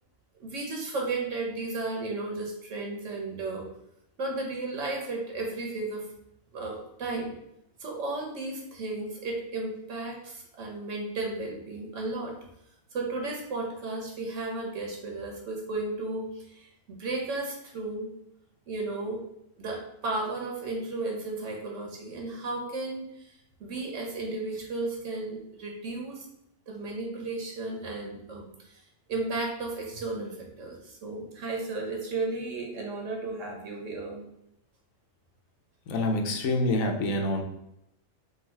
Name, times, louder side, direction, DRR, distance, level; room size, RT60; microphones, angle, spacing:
voice 1, 0.4-3.7 4.2-6.0 6.5-7.3 7.8-12.4 12.9-18.1 18.7-19.2 19.6-23.3 23.6-26.3 26.7-28.8 29.1-34.2, right 2 dB, 70° right, 0 dB, 1.1 m, -34 dB
voice 2, 35.9-37.4, left 1 dB, 85° left, 4 dB, 1.1 m, -26 dB
3.6 x 2.3 x 4.3 m, 0.81 s
omnidirectional pair, 1.4 m